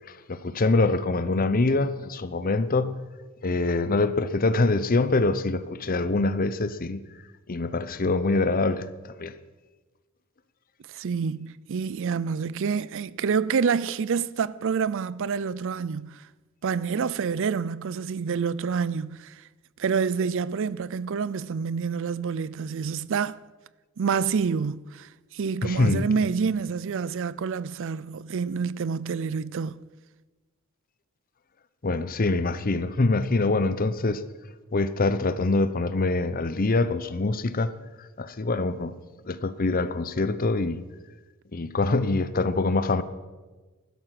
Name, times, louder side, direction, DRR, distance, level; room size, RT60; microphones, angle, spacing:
voice 1, 0.1-3.0 3.4-7.0 7.5-8.9 9.2-9.3 25.6-26.1 31.8-34.2 34.7-37.7 38.2-38.9 39.3-40.8 41.5-43.0, left 3 dB, 40° left, 0.7 m, -24 dB
voice 2, 10.9-16.3 16.6-19.4 19.8-23.4 24.0-29.9, right 6 dB, 60° right, 0.4 m, -28 dB
15.5 x 12.5 x 6.0 m
head